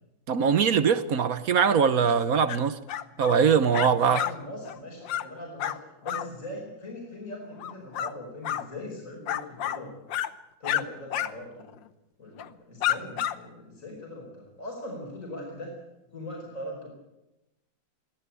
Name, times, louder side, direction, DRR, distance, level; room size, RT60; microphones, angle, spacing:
voice 1, 0.3-2.8 3.2-4.2, right 6 dB, 55° right, 1.2 m, -22 dB
sound 1, 2.5-2.6 2.9-3.4 3.7-4.3 4.6-4.8 5.0-5.3 5.6-5.8 6.1-6.3 7.6-8.1 8.4-8.7 9.3-9.8 10.1-10.3 10.6-10.8 11.1-11.3 11.6-11.7 12.4-12.5 12.8-13.4, left 11 dB, 75° left, 1.6 m, -29 dB
voice 2, 3.6-5.8 6.0-10.0 10.6-11.8 12.2-15.8 16.1-16.9, left 1 dB, 40° left, 5.5 m, -40 dB
24.0 x 16.0 x 8.6 m
omnidirectional pair, 2.1 m